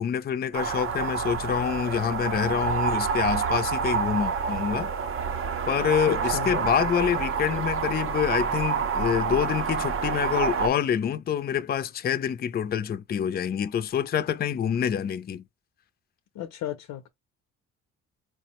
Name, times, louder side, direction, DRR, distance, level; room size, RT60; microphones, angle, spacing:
voice 1, 0.0-4.9 5.7-15.4, left 8 dB, 35° left, 0.4 m, -26 dB
sound 1, 0.5-10.7, right 6 dB, 45° right, 0.6 m, -28 dB
voice 2, 6.1-6.5 16.3-17.1, left 11 dB, 80° left, 0.6 m, -34 dB
4.6 x 2.1 x 2.9 m
cardioid pair, 90°, 30 cm